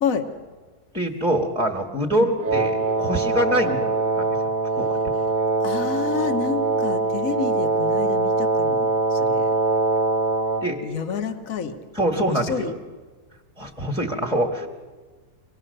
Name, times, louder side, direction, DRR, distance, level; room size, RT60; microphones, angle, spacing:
voice 1, 0.9-4.2 4.8-5.1 10.6-10.8 11.9-12.7 13.6-14.7, right 1 dB, 5° right, 0 dB, 1.4 m, -24 dB
Wind instrument woodwind instrument, 2.4-10.7, right 3 dB, 40° right, 0.8 m, -23 dB
voice 2, 5.6-9.5 10.8-11.7 12.3-12.7, left 6 dB, 65° left, 7 dB, 1.5 m, -29 dB
24.0 x 18.5 x 6.6 m, 1.3 s
omnidirectional pair, 1.6 m